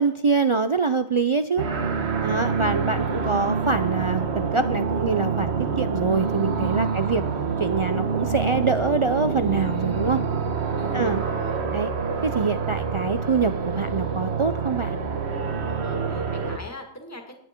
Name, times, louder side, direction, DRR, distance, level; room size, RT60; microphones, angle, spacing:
voice 1, 0.0-1.7 2.2-7.3 7.6-10.2 10.9-11.2 11.7-11.9 12.2-15.0, right 4 dB, 50° right, 10 dB, 0.4 m, -24 dB
sound 1, 1.6-16.6, right 5 dB, 70° right, 1.4 m, -26 dB
voice 2, 6.8-7.2 10.8-11.7 15.7-17.4, left 1 dB, 15° left, 3 dB, 2.0 m, -42 dB
19.5 x 8.9 x 4.5 m, 0.74 s
omnidirectional pair, 1.2 m